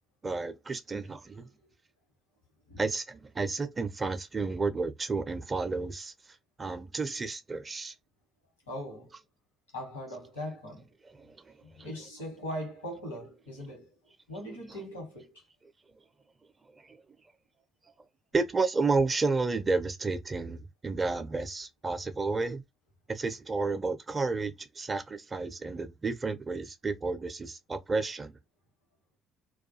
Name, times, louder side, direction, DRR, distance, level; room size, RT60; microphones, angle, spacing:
voice 1, 0.2-1.5 2.8-6.1 6.6-7.9 11.2-11.5 11.8-11.9 16.7-17.0 18.3-22.6 23.1-28.3, right 3 dB, 30° right, 0.4 m, -31 dB
voice 2, 8.7-9.1 9.7-10.9 11.6-13.9 14.3-15.4, equal, 85° left, 1.0 m, -40 dB
2.3 x 2.2 x 2.6 m
figure-of-eight pair, 50°, 0 cm